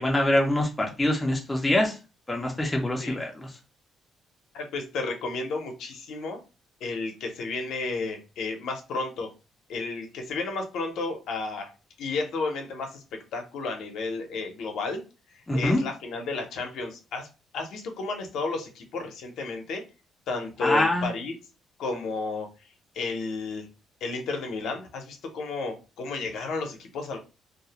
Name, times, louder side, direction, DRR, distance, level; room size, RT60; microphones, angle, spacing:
voice 1, 0.0-2.0 2.3-3.5 15.5-15.8 20.6-21.1, left 1 dB, 10° left, 0 dB, 0.4 m, -24 dB
voice 2, 4.5-6.4 6.8-9.3 9.7-11.7 12.0-13.0 13.3-15.0 15.3-17.3 17.5-19.8 20.3-21.3 21.8-22.5 22.9-23.7 24.0-27.2, left 3 dB, 65° left, 4 dB, 0.5 m, -32 dB
2.3 x 2.0 x 2.7 m, 0.32 s
cardioid pair, 170°, 0 cm